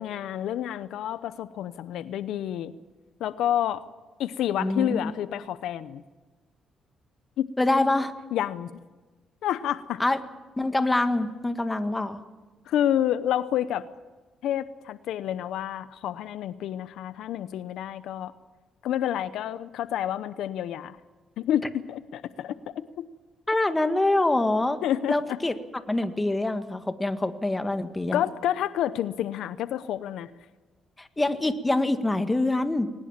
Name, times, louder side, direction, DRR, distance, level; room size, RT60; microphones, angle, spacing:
voice 1, 0.0-2.7 3.2-3.8 4.2-6.0 7.4-7.5 8.3-8.7 9.4-10.0 12.7-13.9 14.4-18.3 18.8-21.0 21.4-23.1 24.8-25.4 28.1-30.3, left 11 dB, 80° left, 14 dB, 0.8 m, -29 dB
voice 2, 4.6-5.1 7.6-8.1 10.0-10.2 10.6-12.2 23.5-24.8 25.1-25.5 25.9-28.2 31.0-32.9, left 2 dB, 15° left, 8 dB, 1.9 m, -25 dB
21.5 x 20.0 x 7.5 m, 1.3 s
cardioid pair, 90°, 0 cm